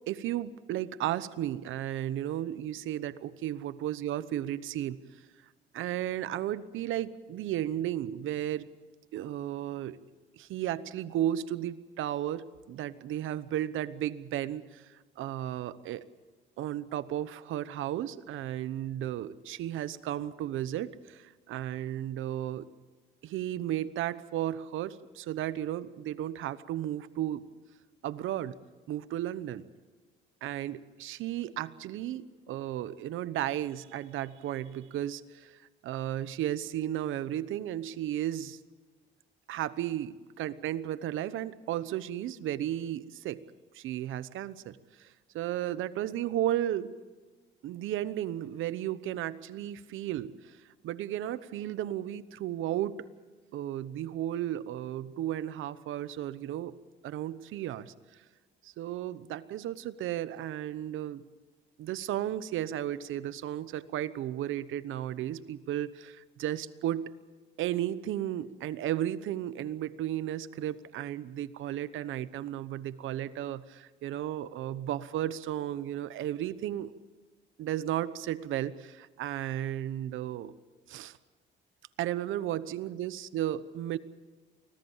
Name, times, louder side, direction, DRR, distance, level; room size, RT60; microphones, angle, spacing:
voice 1, 0.1-5.0 5.7-8.7 9.1-10.0 10.4-16.0 16.6-22.7 23.2-27.4 28.0-28.5 28.9-29.6 30.4-38.6 39.5-43.5 43.7-45.1 45.3-46.9 47.6-50.6 50.8-53.1 53.5-56.7 57.0-57.9 58.6-61.2 61.8-67.1 67.6-76.9 77.6-80.5 80.9-81.2 82.0-84.0, right 12 dB, 85° right, 15 dB, 1.0 m, -34 dB
25.0 x 17.5 x 7.3 m, 1.3 s
cardioid pair, 90°, 20 cm